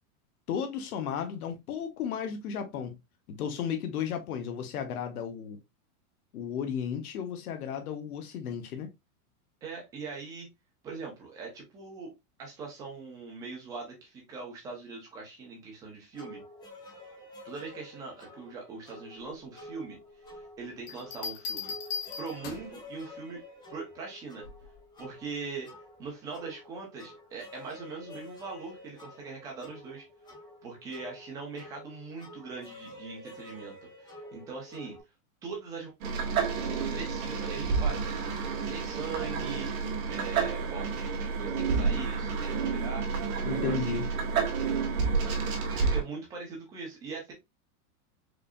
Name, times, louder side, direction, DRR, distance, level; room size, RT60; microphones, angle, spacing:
voice 1, 0.5-3.0 3.3-5.6 6.3-8.9 43.4-44.0, left 8 dB, 70° left, 1.1 m, -34 dB
voice 2, 9.6-10.5 10.8-12.1 12.4-16.4 17.4-21.7 22.2-24.4 25.0-30.1 30.6-35.0 35.4-35.9 36.9-38.3 38.6-39.7 40.1-44.0 45.7-47.3, right 4 dB, 10° right, 0.4 m, -41 dB
sound 1, 16.1-35.0, left 1 dB, 10° left, 1.0 m, -49 dB
sound 2, 20.9-22.8 24.4-24.8, left 5 dB, 40° left, 1.1 m, -38 dB
sound 3, 36.0-46.0, right 5 dB, 65° right, 1.6 m, -30 dB
4.9 x 2.7 x 2.2 m
supercardioid pair, 170°, 46 cm